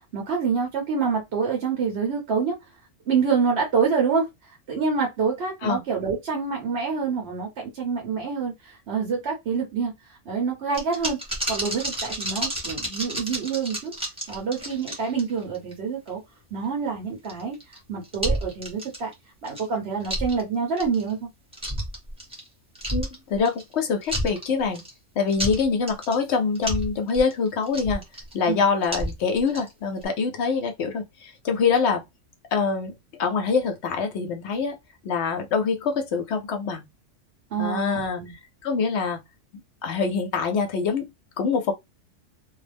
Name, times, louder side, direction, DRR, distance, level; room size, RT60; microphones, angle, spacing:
voice 1, 0.0-2.5 3.1-9.9 10.2-11.2 11.5-13.9 14.3-16.2 16.5-17.6 17.9-19.1 19.4-21.3 28.5-28.6 37.5-38.3, right 5 dB, 55° right, 1.0 m, -26 dB
sound 1, 10.7-15.7 16.1-16.2 17.2-17.8 18.0-19.1 19.5-19.6 20.0-20.4 20.8-21.1 21.5-22.5 22.7-23.7 24.0-24.9 25.3-26.2 26.5-28.3 28.8-29.7 30.0-30.1, right 1 dB, 5° right, 0.7 m, -30 dB
voice 2, 22.9-24.8 25.2-28.0 28.3-32.0 32.5-32.9 33.2-34.8 35.0-36.9 37.6-38.2 38.6-39.2 39.8-41.1 41.4-41.7, left 5 dB, 65° left, 0.8 m, -25 dB
2.6 x 2.0 x 3.3 m
omnidirectional pair, 1.3 m